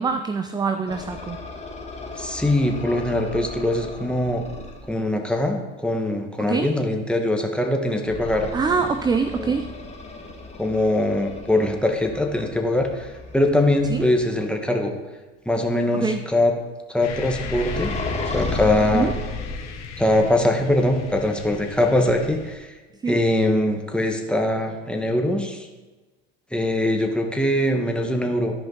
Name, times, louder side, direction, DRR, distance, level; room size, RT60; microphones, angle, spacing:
voice 1, 0.0-1.4 6.4-6.7 8.5-9.7 13.9-14.0 15.9-16.3 18.9-19.1 23.0-23.2, right 5 dB, 15° right, 9 dB, 0.3 m, -24 dB
sound 1, 0.9-4.9 8.0-14.4 17.2-20.1, left 2 dB, 20° left, 1.6 m, -34 dB
voice 2, 2.2-4.4 4.9-8.5 9.3-9.5 10.6-13.1 13.3-14.9 15.4-16.5 16.9-17.9 18.2-19.1 20.0-22.7 23.1-25.7 26.5-28.5, left 1 dB, 5° left, 2 dB, 1.3 m, -22 dB
sound 2, 17.0-22.6, left 5 dB, 50° left, 1.3 m, -37 dB
13.5 x 5.1 x 4.0 m, 1.2 s
supercardioid pair, 90°, 35 cm